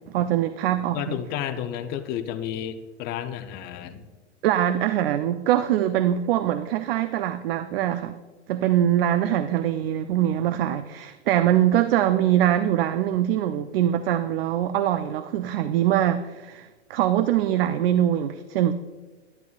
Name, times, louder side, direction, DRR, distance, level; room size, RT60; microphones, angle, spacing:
voice 1, 0.1-1.2 4.4-8.2 8.5-18.7, right 11 dB, 55° right, 12 dB, 0.4 m, -23 dB
voice 2, 0.9-4.1, left 10 dB, 25° left, 9 dB, 0.5 m, -31 dB
11.0 x 10.5 x 2.3 m, 1.3 s
hypercardioid pair, 120°, 36 cm